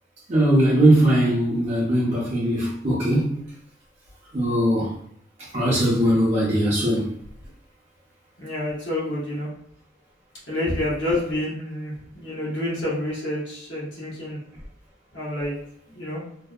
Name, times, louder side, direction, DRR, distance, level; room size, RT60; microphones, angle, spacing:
voice 1, 0.3-3.3 4.3-4.9 5.5-7.1, right 1 dB, 35° right, 0.6 m, -20 dB
voice 2, 8.4-9.5 10.5-14.4 15.1-15.5 15.9-16.2, left 1 dB, 75° left, 1.0 m, -28 dB
2.6 x 2.2 x 2.3 m
head